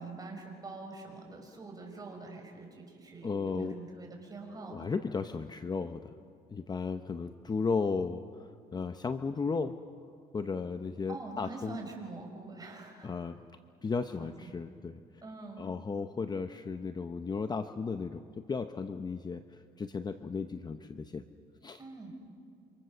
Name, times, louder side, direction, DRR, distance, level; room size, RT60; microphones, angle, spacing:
voice 1, 0.0-4.9 11.1-13.1 14.2-14.5 15.2-15.7 21.8-22.2, right 3 dB, 20° right, 2 dB, 5.9 m, -45 dB
voice 2, 3.2-3.8 4.7-6.1 6.5-9.8 10.3-11.8 13.0-13.4 13.8-15.0 15.6-21.2 21.6-21.8, left 4 dB, 25° left, 9 dB, 0.8 m, -35 dB
28.0 x 26.0 x 6.8 m, 2.4 s
cardioid pair, 110°, 17 cm